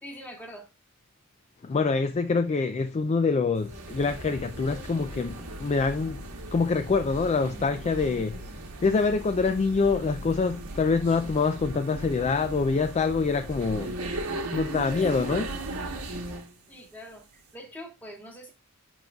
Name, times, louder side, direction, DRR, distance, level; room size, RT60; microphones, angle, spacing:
voice 1, 0.0-0.7 16.7-18.5, equal, 10° left, 1.6 m, -43 dB
voice 2, 1.6-6.2 6.5-13.9 14.5-15.5, left 4 dB, 30° left, 0.3 m, -25 dB
sound 1, 3.6-16.5, right 1 dB, 85° right, 1.3 m, -37 dB
10.5 x 3.9 x 2.3 m
head